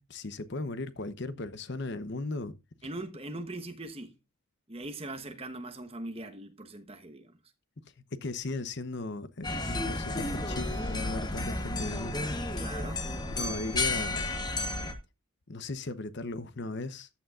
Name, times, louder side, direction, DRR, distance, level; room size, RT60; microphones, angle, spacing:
voice 1, 0.0-2.5 8.2-12.3 13.3-14.3 15.5-17.1, left 2 dB, 50° left, 0.9 m, -37 dB
voice 2, 2.8-4.1 4.7-7.4 12.6-13.1, right 2 dB, 25° right, 1.2 m, -41 dB
sound 1, 9.4-14.9, left 2 dB, 20° left, 1.3 m, -32 dB
14.0 x 8.6 x 2.5 m
head